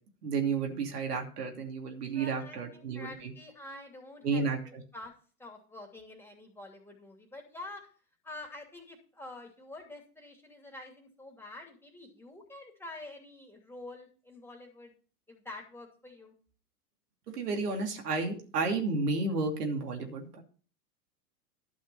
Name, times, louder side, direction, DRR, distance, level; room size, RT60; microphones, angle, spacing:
voice 1, 0.2-3.3 4.2-4.8 17.3-20.4, right 4 dB, 80° right, 3 dB, 2.8 m, -32 dB
voice 2, 2.1-5.1 5.4-7.9 8.2-14.9 15.3-16.3, left 2 dB, 5° left, 1 dB, 2.8 m, -47 dB
12.0 x 5.6 x 5.6 m, 0.40 s
hypercardioid pair, 100°, 46 cm